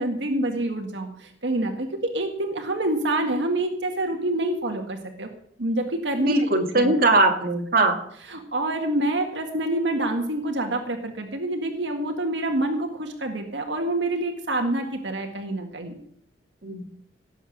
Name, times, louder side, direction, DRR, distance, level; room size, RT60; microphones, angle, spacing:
voice 1, 0.0-5.3 5.6-7.0 8.3-16.0, right 1 dB, 80° right, 3 dB, 1.8 m, -27 dB
voice 2, 6.2-8.0 16.6-16.8, right 2 dB, 55° right, 2 dB, 2.3 m, -20 dB
18.0 x 7.9 x 6.6 m, 0.68 s
head